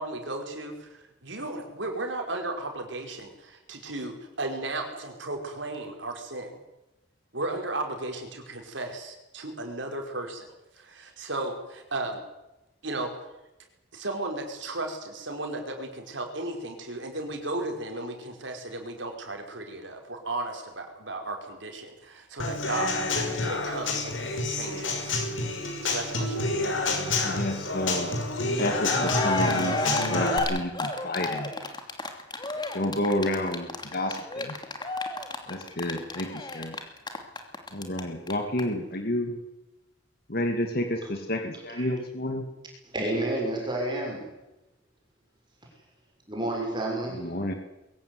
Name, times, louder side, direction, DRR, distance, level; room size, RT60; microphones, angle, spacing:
voice 1, 0.0-6.6 7.3-10.5 10.8-12.2 12.8-13.1 13.9-25.2 25.8-26.5, right 2 dB, 70° right, 3 dB, 5.0 m, -35 dB
Human voice / Acoustic guitar / Drum, 22.4-30.4, left 2 dB, 85° left, 5.9 m, -28 dB
voice 2, 27.2-28.2 28.6-31.5 32.7-34.6 35.5-36.8 37.7-39.4 40.3-42.5 47.2-47.5, left 1 dB, 50° left, 5 dB, 2.4 m, -30 dB
Cheering, 28.6-28.7 28.9-38.0 38.3-38.4 38.6-38.7, left 2 dB, 25° left, 2.8 m, -31 dB
voice 3, 42.8-44.3 46.3-47.3, right 1 dB, 25° right, 0 dB, 6.3 m, -30 dB
22.5 x 16.5 x 9.6 m, 0.97 s
head